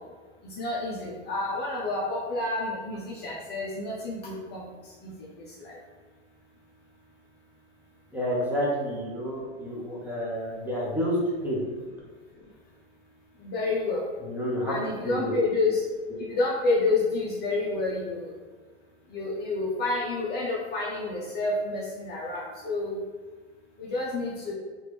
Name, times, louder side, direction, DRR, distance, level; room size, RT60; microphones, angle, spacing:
voice 1, 0.6-4.6 5.6-5.7 13.4-14.0 14.7-15.8 16.3-18.3 19.1-23.0 23.8-24.5, left 3 dB, 30° left, -4 dB, 0.6 m, -29 dB
voice 2, 8.1-11.6 14.2-15.3 16.1-16.2, equal, 5° right, -6 dB, 0.8 m, -29 dB
2.9 x 2.5 x 3.3 m, 1.4 s
supercardioid pair, 120°, 32 cm